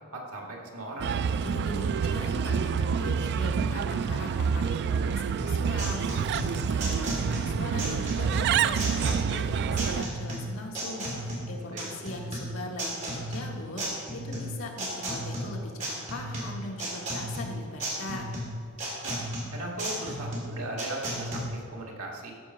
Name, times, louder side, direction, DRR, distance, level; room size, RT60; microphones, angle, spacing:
voice 1, 0.1-1.2 11.7-11.9 19.0-22.3, right 1 dB, 85° right, 0 dB, 1.9 m, -38 dB
Bird, 1.0-10.0, right 6 dB, 50° right, 0.3 m, -27 dB
voice 2, 1.4-18.4, left 1 dB, 70° left, 0 dB, 1.6 m, -40 dB
sound 1, 5.4-21.4, right 1 dB, 35° right, 2.7 m, -34 dB
13.5 x 5.3 x 5.5 m, 2.1 s
head